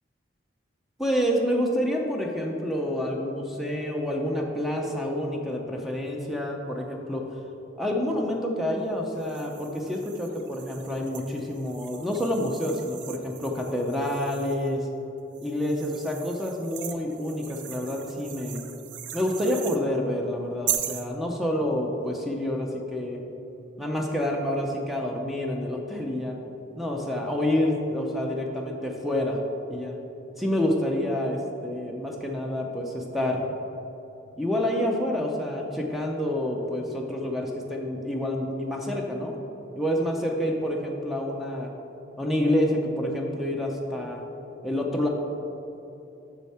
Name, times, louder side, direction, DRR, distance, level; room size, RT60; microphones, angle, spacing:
voice 1, 1.0-7.3 7.8-14.9 15.4-18.6 19.1-23.2 23.8-26.4 26.8-29.4 29.7-30.0 30.4-33.4 34.4-39.4 39.8-41.7 42.2-44.2 44.6-45.1, left 1 dB, ahead, 0 dB, 0.6 m, -28 dB
sound 1, 9.2-14.7 15.3-19.8 20.7-21.1, right 10 dB, 75° right, 0.5 m, -38 dB
6.9 x 6.3 x 4.3 m, 3.0 s
head